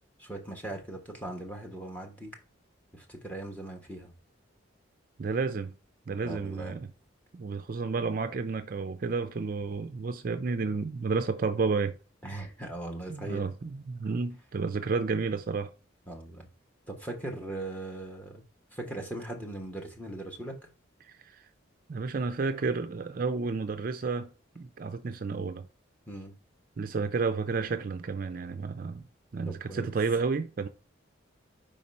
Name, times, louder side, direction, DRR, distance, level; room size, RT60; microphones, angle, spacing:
voice 1, 0.2-2.3 2.9-4.1 6.2-6.8 12.2-13.4 16.1-16.5 16.9-18.4 18.7-20.7 26.1-26.3 29.4-29.9, right 1 dB, 5° left, 1.3 m, -39 dB
voice 2, 5.2-5.7 6.1-6.9 7.3-12.0 13.1-15.7 21.0-21.5 21.9-25.7 26.8-29.0 29.3-30.7, right 4 dB, 45° right, 0.4 m, -31 dB
5.1 x 4.1 x 5.3 m
head